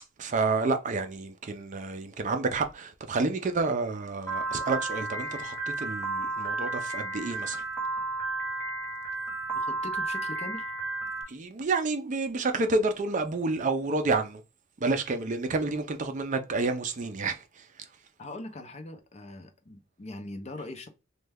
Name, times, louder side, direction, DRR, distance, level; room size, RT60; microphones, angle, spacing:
voice 1, 0.2-7.6 11.3-14.4 14.8-17.9, right 3 dB, 40° right, 0.4 m, -29 dB
Piano, 4.3-11.2, right 2 dB, 10° left, 1.0 m, -32 dB
voice 2, 9.5-10.7 18.2-20.9, left 2 dB, 35° left, 0.6 m, -41 dB
3.2 x 2.2 x 3.3 m
head